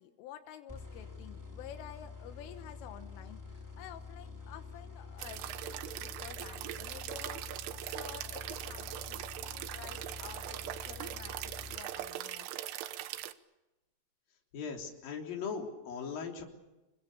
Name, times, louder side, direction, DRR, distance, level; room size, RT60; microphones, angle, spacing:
voice 1, 0.0-12.6, left 10 dB, 85° left, 7 dB, 3.7 m, -51 dB
sound 1, 0.7-12.3, left 4 dB, 15° right, 0.7 m, -47 dB
sound 2, 5.2-13.3, right 13 dB, 85° right, 3.5 m, -41 dB
voice 2, 14.5-16.4, left 6 dB, 50° left, 1 dB, 5.0 m, -39 dB
28.5 x 22.0 x 6.9 m, 1.0 s
omnidirectional pair, 5.6 m